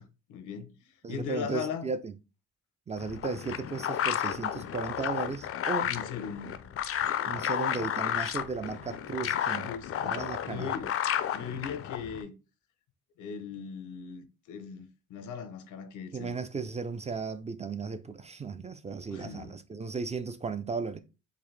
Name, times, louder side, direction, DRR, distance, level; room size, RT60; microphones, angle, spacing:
voice 1, 0.0-1.9 5.9-6.7 9.6-10.9 11.3-12.4 13.2-16.4 19.1-19.6, left 6 dB, 80° left, 0.8 m, -39 dB
voice 2, 1.0-2.2 2.9-5.9 7.3-9.7 10.0-10.7 16.1-21.0, right 4 dB, 25° right, 0.3 m, -35 dB
sound 1, 3.0-12.2, left 10 dB, 50° left, 0.4 m, -32 dB
3.9 x 2.5 x 3.2 m
cardioid pair, 90°, 30 cm